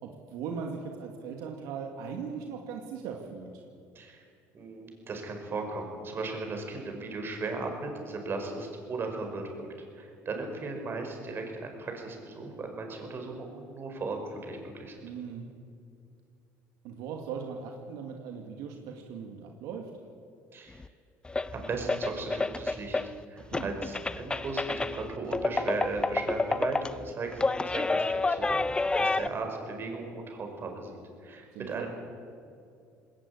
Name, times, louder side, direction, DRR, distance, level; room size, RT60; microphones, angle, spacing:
voice 1, 0.0-3.6 15.0-15.5 16.8-19.9 23.5-23.7 31.5-31.9, right 6 dB, 80° right, 2 dB, 2.3 m, -39 dB
voice 2, 4.5-9.5 10.0-15.0 20.5-20.8 21.5-23.0 23.3-27.4 27.7-31.9, right 3 dB, 35° right, 3 dB, 5.3 m, -37 dB
sound 1, 20.8-20.9 21.2-23.2 23.5-29.3, left 3 dB, 15° left, 0.6 m, -29 dB
20.0 x 18.0 x 8.7 m, 2.4 s
cardioid pair, 110°, 6 cm